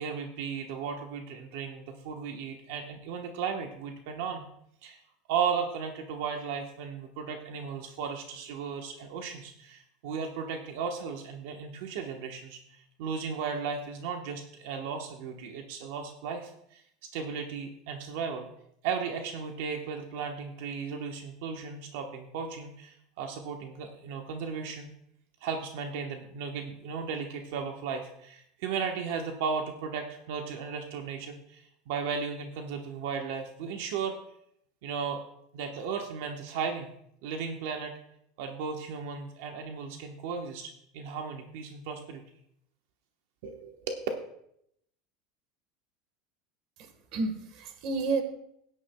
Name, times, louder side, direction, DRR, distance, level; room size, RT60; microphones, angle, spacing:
voice 1, 0.0-4.4 4.8-5.0 5.3-16.8 17.1-18.5 18.8-24.9 25.4-34.1 34.8-35.2 35.5-36.9 37.2-37.9 38.4-42.2 43.4-44.1, right 6 dB, 70° right, 4 dB, 1.1 m, -35 dB
voice 2, 46.8-48.2, right 3 dB, 45° right, 8 dB, 1.3 m, -31 dB
17.0 x 9.8 x 2.2 m, 0.73 s
supercardioid pair, 165°, 0 cm